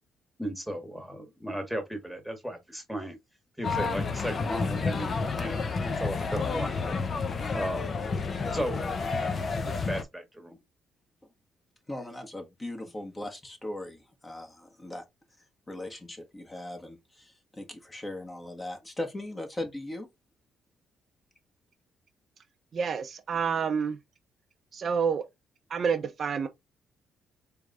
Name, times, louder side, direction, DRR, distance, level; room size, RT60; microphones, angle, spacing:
voice 1, 0.4-3.2 3.6-7.0 7.5-7.9 8.5-8.8 9.2-10.6, equal, ahead, 1.5 m, -35 dB
sound 1, 3.6-10.0, left 4 dB, 45° left, 0.7 m, -30 dB
voice 2, 11.9-15.1 15.7-20.1, left 1 dB, 20° left, 1.3 m, -39 dB
voice 3, 22.7-24.0 24.7-25.2 25.7-26.5, right 6 dB, 50° right, 0.6 m, -28 dB
4.7 x 3.3 x 2.5 m
cardioid pair, 90°, 0 cm